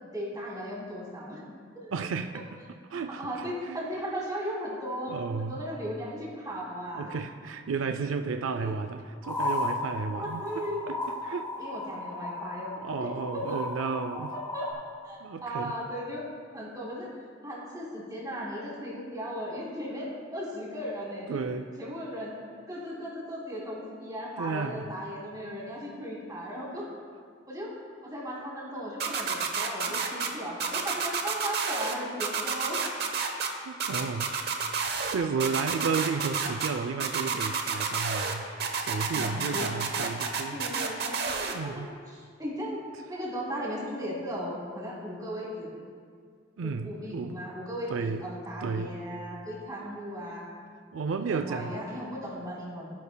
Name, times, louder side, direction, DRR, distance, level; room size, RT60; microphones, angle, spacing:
voice 1, 0.0-1.5 1.7-1.9 2.9-7.1 8.6-8.7 10.1-10.8 11.6-12.7 13.0-13.6 14.5-14.7 15.0-17.1 17.4-21.4 21.8-22.4 22.7-26.9 27.5-27.7 28.0-32.8 34.1-34.3 39.1-39.7 40.5-41.2 41.6-41.8 42.1-42.8 43.1-45.7 46.6-50.4 51.3-53.0, equal, 20° right, -5 dB, 2.8 m, -37 dB
voice 2, 1.9-2.6 2.9-3.8 5.1-5.6 6.9-10.5 10.9-11.5 12.8-14.3 15.2-15.7 21.3-21.7 24.4-24.8 29.9-30.0 33.7-34.4 34.9-40.6 41.4-41.9 46.6-47.4 47.9-48.2 48.6-48.9 50.9-51.8, right 5 dB, 90° right, 7 dB, 0.4 m, -33 dB
sound 1, 9.2-14.7, left 2 dB, 15° left, 2.0 m, -35 dB
sound 2, 29.0-30.3 30.6-31.9 32.2-33.5 33.8-35.1 35.4-36.7 37.0-38.3 38.6-41.5, right 5 dB, 55° right, 0.9 m, -29 dB
15.5 x 10.5 x 2.2 m, 2.1 s
head